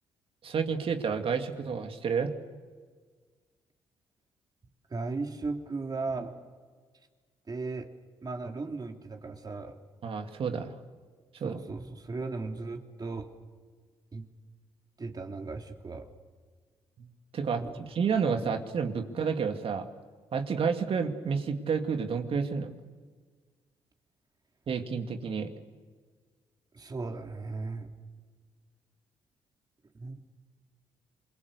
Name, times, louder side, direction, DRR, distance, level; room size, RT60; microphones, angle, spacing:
voice 1, 0.4-2.3 10.0-10.7 11.4-11.6 17.0-17.1 17.3-19.9 20.3-22.7 24.7-25.5, right 6 dB, 55° right, 6 dB, 2.3 m, -30 dB
voice 2, 4.9-6.4 7.5-7.9 8.2-9.8 11.4-13.3 14.1-14.3 15.0-16.1 17.6-17.8 26.7-27.9 29.9-30.2, right 3 dB, 35° right, 3 dB, 3.1 m, -36 dB
27.5 x 22.5 x 6.8 m, 1.5 s
hypercardioid pair, 50°, 11 cm